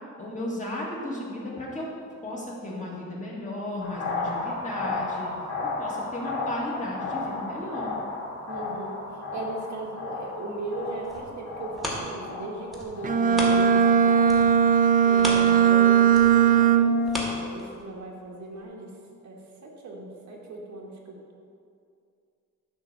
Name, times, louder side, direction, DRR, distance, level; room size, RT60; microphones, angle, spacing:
voice 1, 0.2-1.9 2.2-5.3 5.8-8.0, left 1 dB, 25° left, -4 dB, 1.8 m, -34 dB
sound 1, 3.8-14.0, left 3 dB, 60° left, 2.2 m, -34 dB
voice 2, 8.5-9.0 9.3-14.5 15.0-18.9 19.2-21.1, right 2 dB, 65° right, -1 dB, 1.5 m, -37 dB
sound 2, 11.0-14.0 14.2-18.1 18.6-18.7, equal, ahead, 1.5 m, -35 dB
Bowed string instrument, 13.0-17.2, right 7 dB, 30° right, 0.3 m, -19 dB
10.5 x 3.9 x 6.5 m, 2.4 s
wide cardioid pair, 145°, 30 cm